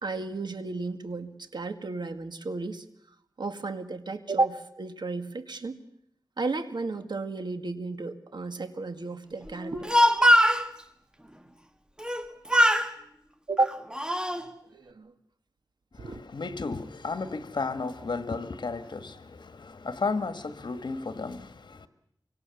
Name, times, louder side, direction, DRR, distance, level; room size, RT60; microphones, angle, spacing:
voice 1, 0.0-2.8 3.4-5.8 6.4-10.1 13.5-13.8 14.7-15.1 16.0-16.2, right 3 dB, 70° right, 2.1 m, -32 dB
Speech, 9.6-10.7 12.0-12.2 12.5-12.9 13.6-14.4, equal, 10° right, 1.8 m, -21 dB
voice 2, 15.9-21.9, left 4 dB, 75° left, 1.7 m, -33 dB
25.5 x 24.5 x 7.1 m
wide cardioid pair, 75°, 8 cm